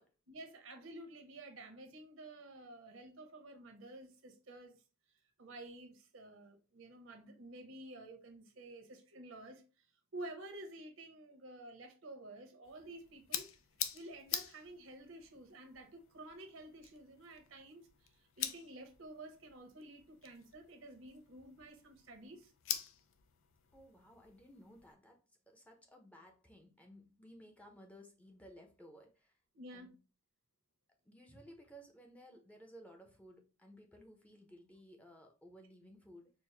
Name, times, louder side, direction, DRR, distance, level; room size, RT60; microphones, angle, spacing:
voice 1, 0.3-4.8 5.4-9.6 10.1-13.5 13.9-22.5 29.5-29.9, right 1 dB, 80° right, 0.9 m, -51 dB
sound 1, 12.6-24.9, left 9 dB, 80° left, 0.5 m, -46 dB
voice 2, 23.7-29.4 29.7-29.9 31.1-36.3, equal, 5° left, 0.5 m, -58 dB
4.5 x 2.0 x 3.1 m
head